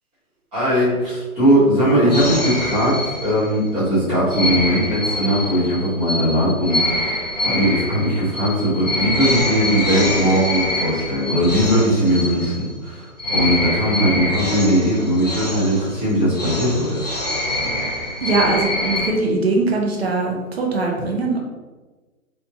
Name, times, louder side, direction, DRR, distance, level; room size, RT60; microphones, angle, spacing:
voice 1, 0.5-17.1, equal, 10° right, -12 dB, 1.1 m, -19 dB
sound 1, 2.1-3.7 4.3-12.9 13.2-19.1, left 1 dB, 30° left, 0.5 m, -25 dB
voice 2, 18.2-21.4, right 3 dB, 45° right, 0 dB, 0.7 m, -21 dB
3.3 x 2.8 x 2.8 m, 1.2 s
hypercardioid pair, 155°, 44 cm